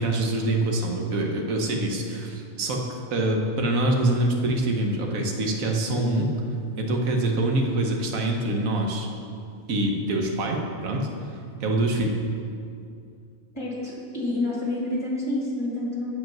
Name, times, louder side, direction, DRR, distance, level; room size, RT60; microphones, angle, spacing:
voice 1, 0.0-6.3 6.8-9.1 9.7-12.1, right 2 dB, 80° right, 1 dB, 1.5 m, -25 dB
voice 2, 13.5-16.2, left 2 dB, 20° left, -4 dB, 2.1 m, -28 dB
7.8 x 7.1 x 5.9 m, 2.4 s
omnidirectional pair, 1.4 m